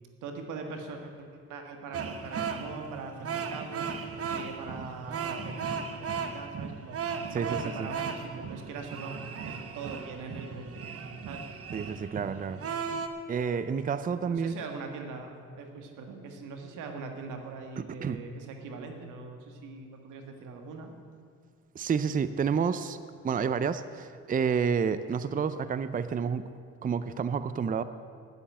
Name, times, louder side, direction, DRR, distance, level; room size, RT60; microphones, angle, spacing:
voice 1, 0.2-3.9 4.3-7.0 7.3-10.8 11.2-11.5 14.2-20.9, right 4 dB, 90° right, 4 dB, 1.7 m, -42 dB
sound 1, 1.9-13.1, right 6 dB, 50° right, 1.1 m, -36 dB
voice 2, 7.3-7.9 11.7-12.6 13.3-14.6 18.0-18.2 21.7-23.0 23.2-26.4 26.8-27.8, right 6 dB, 30° right, 13 dB, 0.5 m, -29 dB
9.7 x 8.6 x 9.1 m, 2.1 s
cardioid pair, 90°, 30 cm